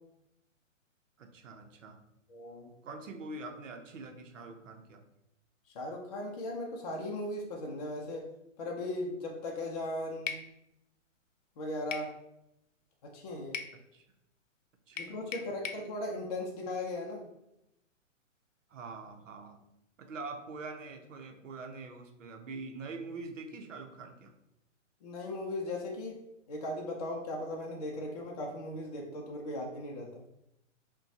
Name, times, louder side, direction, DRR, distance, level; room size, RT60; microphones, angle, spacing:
voice 1, 1.2-2.0 2.8-5.0 13.9-14.0 14.9-15.2 18.7-19.6 20.0-24.3, right 3 dB, 70° right, 5 dB, 0.8 m, -44 dB
voice 2, 2.3-2.7 5.7-8.3 8.6-10.3 11.6-12.1 13.0-13.6 15.0-17.2 25.0-26.2 26.5-30.1, left 1 dB, 30° left, -1 dB, 0.5 m, -37 dB
sound 1, 10.3-10.5 11.9-12.1 13.5-13.8 15.0-15.9, left 6 dB, 80° left, 0.6 m, -38 dB
5.3 x 2.2 x 2.7 m, 0.85 s
hypercardioid pair, 155°, 39 cm